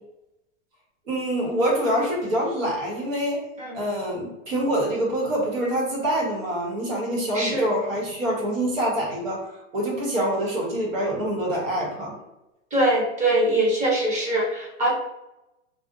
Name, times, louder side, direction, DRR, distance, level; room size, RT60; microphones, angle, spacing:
voice 1, 1.1-3.4 3.7-12.2, right 1 dB, 90° right, -3 dB, 1.2 m, -25 dB
voice 2, 7.3-7.7 12.7-14.9, right 1 dB, 20° right, -2 dB, 0.6 m, -22 dB
2.4 x 2.1 x 2.6 m, 0.92 s
hypercardioid pair, 130°, 38 cm